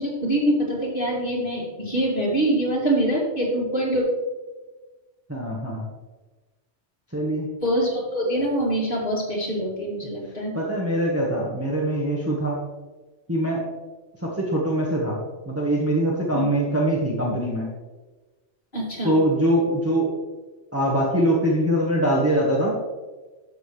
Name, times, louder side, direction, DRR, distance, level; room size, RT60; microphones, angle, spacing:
voice 1, 0.0-4.0 7.6-10.5 16.3-16.4 18.7-19.2, right 1 dB, 45° left, -6 dB, 2.8 m, -24 dB
voice 2, 5.3-5.9 7.1-7.5 10.5-12.6 13.3-13.6 14.2-15.2 15.5-17.7 19.0-20.1 20.7-22.8, right 1 dB, 10° right, -4 dB, 1.3 m, -23 dB
12.5 x 6.6 x 3.3 m, 1.2 s
omnidirectional pair, 1.2 m